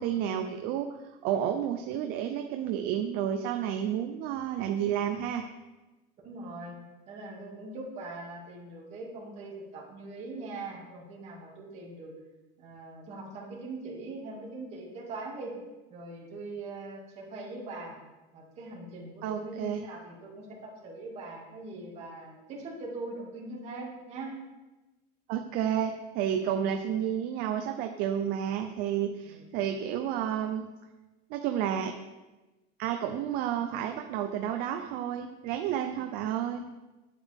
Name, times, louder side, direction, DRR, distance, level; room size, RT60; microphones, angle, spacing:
voice 1, 0.0-5.4 19.2-19.8 25.3-30.7 31.3-31.9 32.8-36.7, right 9 dB, 50° right, 5 dB, 0.5 m, -31 dB
voice 2, 6.2-6.8 7.1-12.1 12.6-15.5 15.9-17.9 18.3-24.3 26.3-26.8 29.2-29.5, right 2 dB, 35° right, -4 dB, 2.4 m, -41 dB
9.2 x 8.5 x 3.6 m, 1.1 s
cardioid pair, 175°, 20 cm